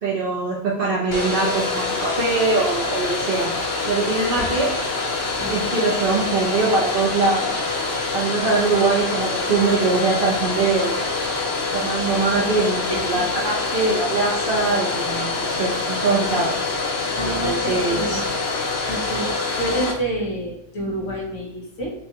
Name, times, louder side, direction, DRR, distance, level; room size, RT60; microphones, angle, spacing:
voice 1, 0.0-3.5 3.8-4.7 5.4-7.7 8.1-11.0 11.7-16.5 17.2-18.2, right 3 dB, 50° right, -7 dB, 0.7 m, -22 dB
Domestic sounds home sounds, 1.1-19.9, left 3 dB, 90° left, 0.5 m, -25 dB
voice 2, 5.4-5.7 12.3-13.0 17.2-18.2 18.9-21.9, right 1 dB, 50° left, -1 dB, 1.1 m, -29 dB
6.4 x 2.3 x 2.9 m, 0.72 s
omnidirectional pair, 1.9 m